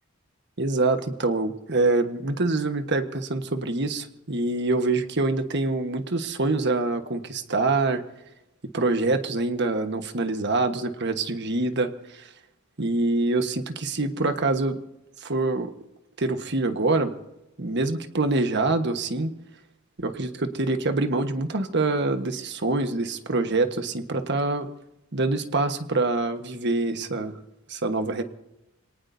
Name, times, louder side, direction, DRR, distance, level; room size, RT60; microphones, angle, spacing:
voice 1, 0.6-8.0 8.7-12.3 12.8-14.8 15.2-15.7 16.2-17.1 17.6-19.3 20.0-24.7 25.1-27.4 27.7-28.2, right 2 dB, 55° right, 7 dB, 1.4 m, -25 dB
27.5 x 18.5 x 2.7 m, 0.93 s
head